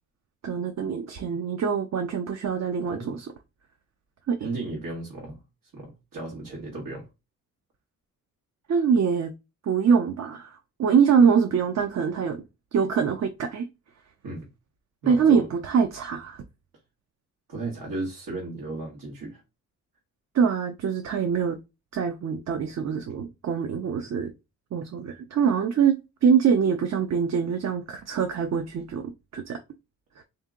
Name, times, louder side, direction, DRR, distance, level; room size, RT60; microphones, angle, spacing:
voice 1, 0.4-3.3 4.3-4.4 8.7-9.3 9.6-12.4 12.7-13.7 15.1-16.4 20.3-21.6 21.9-24.3 24.7-29.6 30.2-30.3, right 6 dB, 50° right, 0.5 m, -24 dB
voice 2, 2.8-3.2 4.4-5.4 5.7-7.1 14.2-14.5 15.0-15.5 17.5-19.4, right 2 dB, 85° right, 1.5 m, -35 dB
3.7 x 2.7 x 3.6 m
wide cardioid pair, 115°, 33 cm